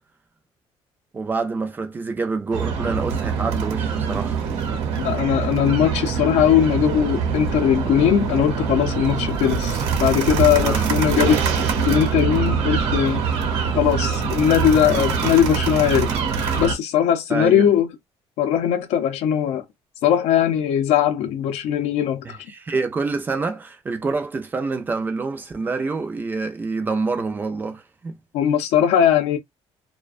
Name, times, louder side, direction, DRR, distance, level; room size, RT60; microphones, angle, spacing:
voice 1, 1.1-4.4 10.6-11.0 17.3-17.7 22.2-28.1, right 4 dB, 20° right, 0.4 m, -27 dB
sound 1, 2.5-16.7, right 6 dB, 75° right, 0.8 m, -24 dB
voice 2, 5.0-11.4 11.8-13.3 13.7-16.2 16.6-17.9 18.4-19.6 20.0-22.4 28.3-29.4, left 9 dB, 85° left, 0.6 m, -19 dB
2.3 x 2.2 x 2.4 m
cardioid pair, 175°, 11 cm